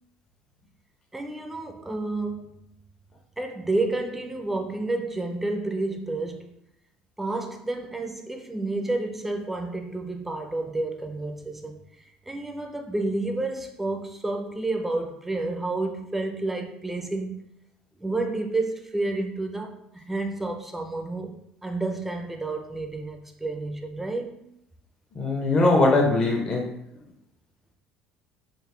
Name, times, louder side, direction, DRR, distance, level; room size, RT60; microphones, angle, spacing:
voice 1, 1.1-2.6 3.4-6.5 7.2-11.8 12.3-17.4 18.0-24.4, right 2 dB, 10° right, 0.5 m, -30 dB
voice 2, 25.1-26.7, left 2 dB, 30° left, 0.8 m, -21 dB
4.0 x 2.6 x 3.2 m
cardioid pair, 115°, 3 cm